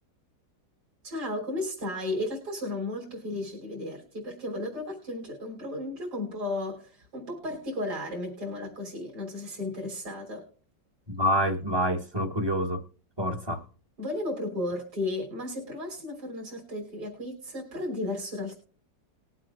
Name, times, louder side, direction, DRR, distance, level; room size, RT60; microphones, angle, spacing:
voice 1, 1.0-10.4 14.0-18.5, left 1 dB, 60° right, -2 dB, 4.1 m, -34 dB
voice 2, 11.1-12.8 13.2-13.6, equal, 15° right, 6 dB, 1.1 m, -27 dB
20.5 x 7.8 x 2.5 m, 0.43 s
omnidirectional pair, 1.9 m